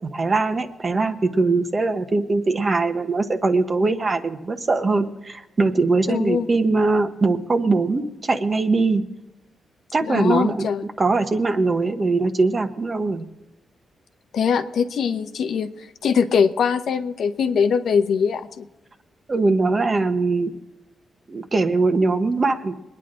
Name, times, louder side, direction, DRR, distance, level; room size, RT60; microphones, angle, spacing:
voice 1, 0.1-9.0 9.9-10.7 11.0-13.2 19.3-20.5 21.3-22.7, right 3 dB, 35° right, 7 dB, 1.1 m, -21 dB
voice 2, 6.1-6.5 10.0-10.9 14.3-15.7 16.0-18.7, left 6 dB, 75° left, 8 dB, 0.9 m, -22 dB
22.0 x 9.9 x 3.8 m, 1.0 s
cardioid pair, 105°, 0 cm